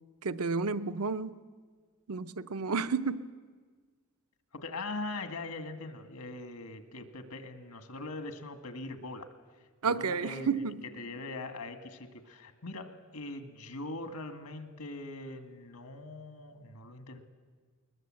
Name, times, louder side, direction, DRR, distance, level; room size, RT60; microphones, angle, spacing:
voice 1, 0.2-1.4 2.1-3.3 9.8-10.8, right 5 dB, 80° right, 12 dB, 0.7 m, -31 dB
voice 2, 4.5-9.3 9.8-10.5 11.0-17.2, left 2 dB, 85° left, 8 dB, 1.9 m, -41 dB
21.5 x 20.5 x 7.7 m, 1.5 s
head